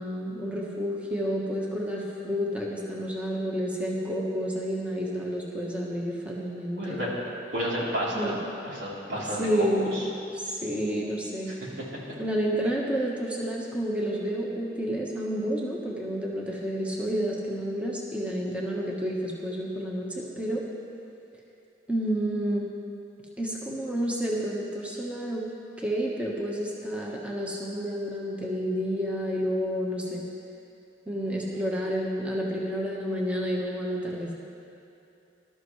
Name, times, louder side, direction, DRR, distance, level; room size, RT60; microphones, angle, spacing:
voice 1, 0.0-7.0 8.1-8.4 9.4-9.9 10.3-11.5 12.2-20.6 21.9-22.7 23.4-25.4 25.8-30.2 31.1-34.3, equal, 5° right, -4 dB, 1.3 m, -30 dB
voice 2, 6.8-7.1 7.5-8.3 8.6-10.0 11.5-11.6, equal, 85° right, -6 dB, 3.5 m, -31 dB
20.0 x 12.5 x 3.2 m, 2.7 s
head